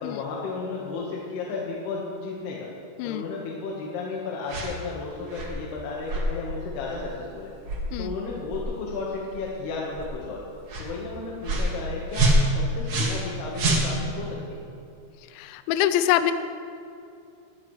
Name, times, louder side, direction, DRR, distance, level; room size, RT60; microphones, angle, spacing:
voice 1, 0.0-2.7 3.0-7.5 8.0-10.4 10.8-14.6, left 4 dB, 65° left, -4 dB, 2.9 m, -33 dB
sound 1, 4.5-4.7 5.3-5.6 6.1-6.3 6.9-7.0 7.6-7.9 8.5-8.7 9.3-9.5 9.9-10.1 10.7-10.9 11.4-11.7 12.1-13.3 13.5-14.2, right 1 dB, 70° right, 1.4 m, -25 dB
voice 2, 15.4-16.3, left 12 dB, 90° left, 10 dB, 2.6 m, -24 dB
21.0 x 14.0 x 3.2 m, 2.5 s
omnidirectional pair, 5.9 m